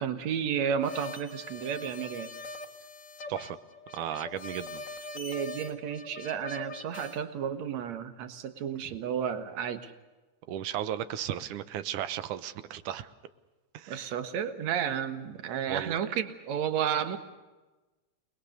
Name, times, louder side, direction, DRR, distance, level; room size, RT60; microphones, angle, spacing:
voice 1, 0.0-2.3 5.1-9.9 13.9-17.2, right 8 dB, 65° right, 9 dB, 2.7 m, -32 dB
sound 1, 0.8-7.2, left 3 dB, 40° left, 2.0 m, -42 dB
voice 2, 3.9-4.8 10.5-13.1 13.7-14.1 15.7-16.0, right 11 dB, 90° right, 13 dB, 2.6 m, -35 dB
29.5 x 21.0 x 6.8 m, 1.2 s
omnidirectional pair, 3.5 m